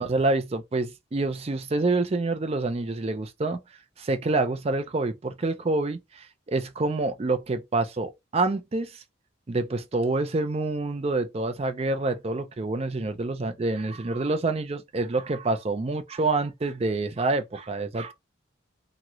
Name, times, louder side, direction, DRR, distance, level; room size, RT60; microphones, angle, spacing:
voice 1, 0.0-3.6 4.0-9.0 9.5-18.1, right 2 dB, 30° right, 0.4 m, -27 dB
3.0 x 2.8 x 2.4 m
head